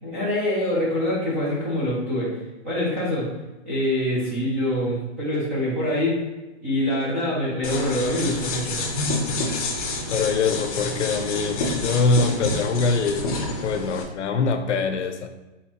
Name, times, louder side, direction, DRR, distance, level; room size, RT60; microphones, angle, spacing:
voice 1, 0.0-2.3 2.6-3.3 3.6-6.2 6.6-8.9, left 1 dB, 10° right, -7 dB, 0.4 m, -25 dB
sound 1, 7.6-14.0, left 2 dB, 30° left, 0.6 m, -28 dB
voice 2, 10.1-13.3 13.6-15.3, left 4 dB, 70° left, 8 dB, 0.7 m, -23 dB
4.3 x 4.2 x 2.9 m, 1.1 s
hypercardioid pair, 165°, 36 cm